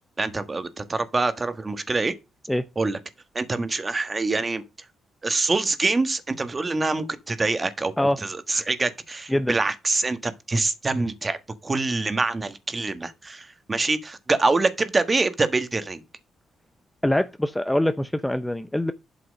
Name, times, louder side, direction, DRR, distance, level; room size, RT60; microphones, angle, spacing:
voice 1, 0.2-2.1 2.8-3.0 3.3-4.6 5.2-11.4 11.6-16.0, right 3 dB, 25° right, 1.4 m, -25 dB
voice 2, 17.0-18.9, left 1 dB, 5° left, 0.6 m, -23 dB
8.3 x 5.9 x 5.3 m
cardioid pair, 90°, 0 cm